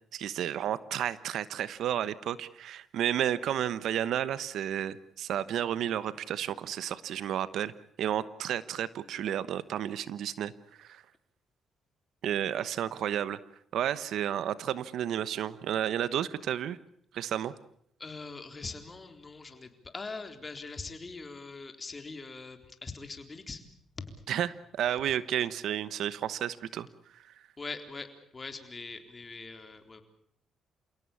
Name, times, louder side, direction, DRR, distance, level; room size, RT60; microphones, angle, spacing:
voice 1, 0.1-7.7 8.0-10.5 10.8-11.0 12.2-13.4 13.7-16.8 17.1-17.5 24.3-24.5 24.7-26.9, right 10 dB, 75° right, 16 dB, 1.1 m, -32 dB
voice 2, 18.0-23.6 24.0-24.2 27.6-28.1 28.3-30.0, left 3 dB, 30° left, 7 dB, 3.8 m, -42 dB
28.5 x 17.5 x 8.5 m, 0.70 s
cardioid pair, 90°, 0 cm